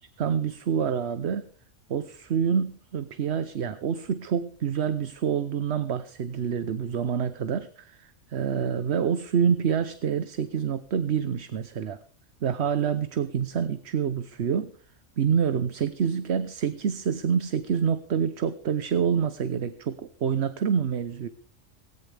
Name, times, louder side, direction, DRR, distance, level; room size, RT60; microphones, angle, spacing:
voice 1, 0.2-1.4 1.9-12.0 12.4-14.7 15.2-21.3, right 7 dB, 60° right, 12 dB, 1.1 m, -27 dB
18.0 x 17.5 x 3.4 m, 0.42 s
omnidirectional pair, 1.3 m